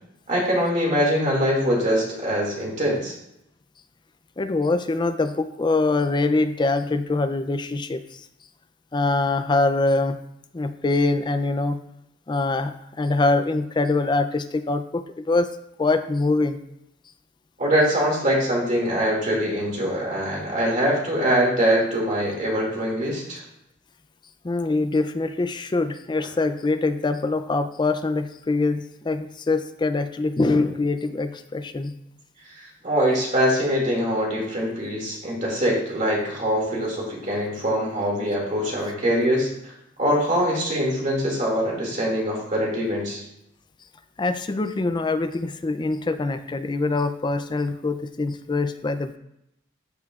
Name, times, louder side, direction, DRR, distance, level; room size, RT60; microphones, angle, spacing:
voice 1, 0.3-3.1 17.6-23.4 32.6-39.7 40.0-43.2, equal, 40° right, -2 dB, 2.2 m, -23 dB
voice 2, 4.4-8.0 8.9-10.2 10.5-11.8 12.3-15.5 15.8-16.6 24.4-31.9 44.2-49.2, left 3 dB, 25° left, 10 dB, 0.4 m, -24 dB
13.5 x 4.8 x 2.4 m, 0.82 s
head